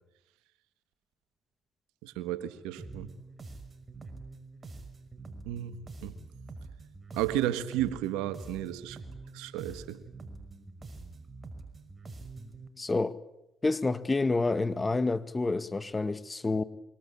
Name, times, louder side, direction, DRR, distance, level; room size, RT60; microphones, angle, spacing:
voice 1, 2.0-3.1 5.5-5.7 6.0-6.1 7.1-9.0 9.3-10.0, right 12 dB, 90° right, 1.5 m, -33 dB
sound 1, 2.8-12.7, right 3 dB, 35° right, 5.7 m, -46 dB
voice 2, 12.8-13.2 13.6-16.6, left 3 dB, 30° left, 1.8 m, -28 dB
27.0 x 24.0 x 8.6 m
supercardioid pair, 50°, 0 cm